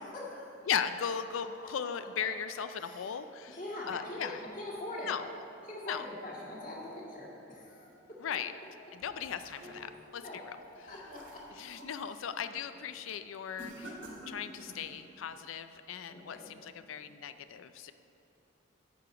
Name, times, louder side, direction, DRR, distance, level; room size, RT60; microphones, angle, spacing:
voice 1, 0.0-0.5 2.8-3.2 3.5-5.1 5.7-7.9 10.2-10.4 10.9-11.4 16.1-16.5, left 1 dB, 40° left, -4 dB, 1.9 m, -43 dB
voice 2, 0.7-3.6 3.8-4.4 5.0-5.3 5.8-6.1 8.2-8.5 8.9-10.6 10.8-10.9 11.5-14.0 14.3-17.9, left 7 dB, 90° left, 11 dB, 0.4 m, -37 dB
sound 1, 9.0-10.1 10.6-12.0 12.4-12.7 13.6-14.9, right 1 dB, 85° right, 2.1 m, -49 dB
10.5 x 4.9 x 7.9 m, 2.9 s
head